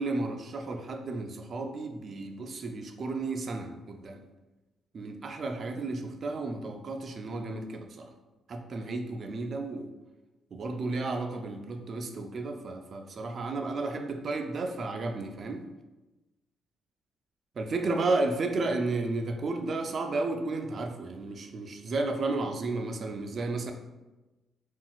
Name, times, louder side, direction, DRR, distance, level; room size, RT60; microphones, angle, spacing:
voice 1, 0.0-4.2 4.9-8.1 8.5-9.9 10.5-15.6 17.6-23.7, right 3 dB, 50° right, 4 dB, 0.3 m, -33 dB
3.8 x 2.2 x 2.3 m, 1.1 s
cardioid pair, 90°, 0 cm